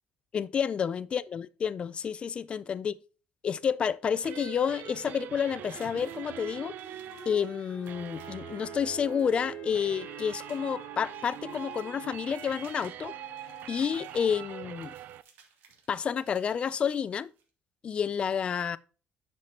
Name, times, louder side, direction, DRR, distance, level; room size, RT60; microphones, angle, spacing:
voice 1, 0.3-2.9 3.4-6.8 7.3-13.1 13.7-14.9 15.9-17.3 17.8-18.8, left 7 dB, 30° left, 0.3 m, -30 dB
sound 1, 4.1-15.2, right 12 dB, 55° right, 0.4 m, -43 dB
Wind instrument woodwind instrument, 5.4-14.2, left 8 dB, 45° left, 1.0 m, -53 dB
sound 2, 5.6-17.5, right 6 dB, 80° right, 2.2 m, -61 dB
9.3 x 6.6 x 2.9 m
cardioid pair, 160°, 4 cm